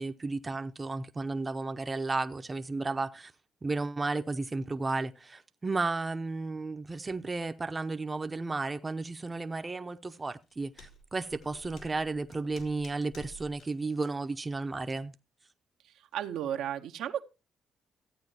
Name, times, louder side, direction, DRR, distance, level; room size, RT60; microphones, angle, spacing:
voice 1, 0.0-3.3 3.6-15.1, right 3 dB, 25° right, 0.7 m, -33 dB
sound 1, 10.2-13.7 14.0-14.1, left 2 dB, 80° left, 3.2 m, -53 dB
voice 2, 15.8-17.2, right 10 dB, 85° right, 0.9 m, -34 dB
14.0 x 8.8 x 2.9 m
cardioid pair, 90°, 0 cm